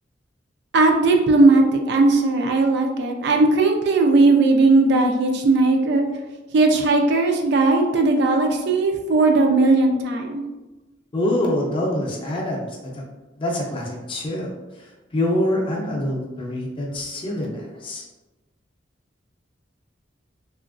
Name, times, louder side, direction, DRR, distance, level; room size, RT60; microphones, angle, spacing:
voice 1, 0.7-6.0 6.5-10.4, right 3 dB, 65° right, 3 dB, 0.4 m, -17 dB
voice 2, 11.1-13.0 13.4-18.1, left 1 dB, 30° left, -2 dB, 0.5 m, -25 dB
3.0 x 2.4 x 2.4 m, 1.1 s
head